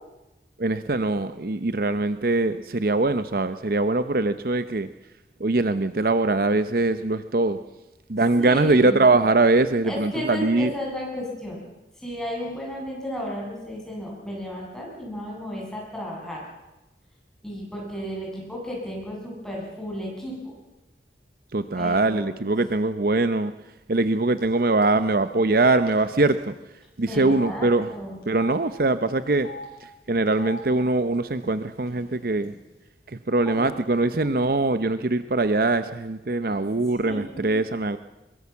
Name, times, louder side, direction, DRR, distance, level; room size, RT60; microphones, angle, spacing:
voice 1, 0.6-4.9 5.4-7.6 8.1-10.7 21.5-23.5 23.9-26.5 27.0-27.9 28.3-29.5 29.8-32.5 33.1-38.0, right 2 dB, 55° right, 12 dB, 0.7 m, -22 dB
voice 2, 8.4-9.0 9.8-11.6 12.0-16.4 17.4-20.5 21.8-22.4 27.1-28.2 33.4-33.7 34.2-34.3 36.5-36.6 37.0-37.6, equal, 5° left, -3 dB, 7.3 m, -33 dB
Telephone, 24.4-24.6 24.8-25.0 25.9-26.0 26.3-26.4 27.2-27.5 28.2-28.6 29.3-29.7 30.3-30.6 31.4-31.5 31.8-32.5, left 3 dB, 50° left, 6.7 m, -40 dB
22.5 x 22.0 x 7.2 m, 1.0 s
head